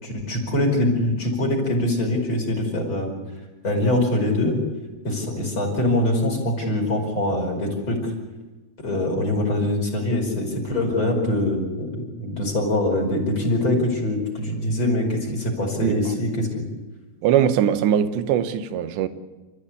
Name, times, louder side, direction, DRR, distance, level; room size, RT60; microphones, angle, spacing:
voice 1, 0.0-3.1 3.6-4.6 5.0-8.1 8.8-16.7, left 1 dB, 30° left, 5.6 m, -23 dB
voice 2, 17.2-19.1, right 9 dB, 90° right, 3.3 m, -21 dB
28.5 x 14.5 x 8.5 m
omnidirectional pair, 4.9 m